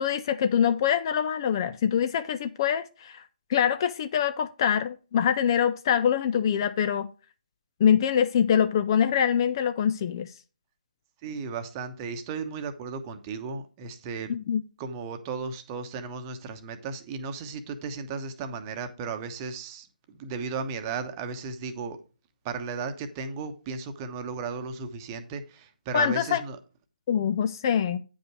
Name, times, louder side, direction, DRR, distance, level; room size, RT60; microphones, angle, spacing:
voice 1, 0.0-3.2 3.5-7.1 7.8-10.3 14.3-14.6 25.9-26.4 27.1-28.0, left 8 dB, 30° left, 0.4 m, -24 dB
voice 2, 11.2-14.3 14.8-22.0 22.4-26.6, right 5 dB, 20° right, 1.0 m, -35 dB
9.4 x 5.3 x 4.7 m
figure-of-eight pair, 145°, 5 cm